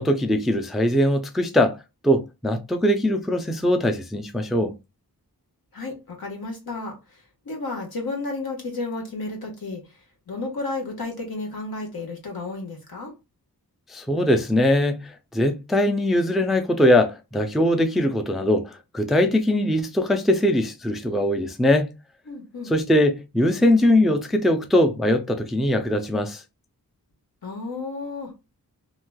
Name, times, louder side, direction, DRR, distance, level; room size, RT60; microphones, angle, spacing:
voice 1, 0.0-1.8 2.0-4.7 13.9-21.9 22.7-26.4, left 1 dB, ahead, 0.3 m, -21 dB
voice 2, 5.7-10.0 10.3-13.1 22.3-22.7 27.4-28.3, left 3 dB, 75° left, 1.3 m, -32 dB
3.0 x 2.7 x 2.2 m
wide cardioid pair, 100°, 36 cm